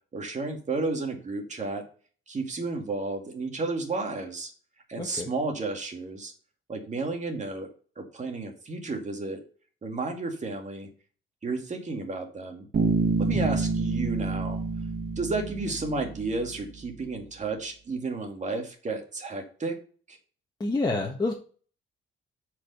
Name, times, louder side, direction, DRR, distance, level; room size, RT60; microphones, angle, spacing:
voice 1, 0.1-1.8 2.3-4.5 4.9-6.3 6.7-7.7 8.0-9.4 9.8-10.9 11.4-12.7 13.2-14.6 15.2-19.8 20.1-20.2, right 3 dB, 35° right, 3 dB, 2.3 m, -32 dB
voice 2, 5.0-5.3 13.3-13.6 20.6-21.3, left 3 dB, 20° left, -1 dB, 1.5 m, -28 dB
Bass guitar, 12.7-16.4, right 4 dB, 50° right, 2.8 m, -28 dB
8.6 x 5.1 x 5.5 m, 0.40 s
cardioid pair, 90°, 20 cm